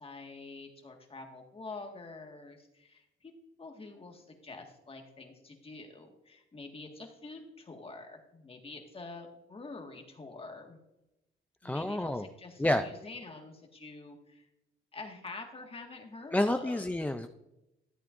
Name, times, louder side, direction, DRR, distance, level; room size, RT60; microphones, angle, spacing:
voice 1, 0.0-3.3 3.6-10.8 11.6-14.5 14.9-16.8, left 3 dB, 30° left, 3 dB, 1.8 m, -46 dB
voice 2, 11.6-12.3 12.6-12.9 16.3-17.3, left 1 dB, 10° left, 7 dB, 0.4 m, -29 dB
13.5 x 8.3 x 2.6 m, 0.93 s
cardioid pair, 90°, 20 cm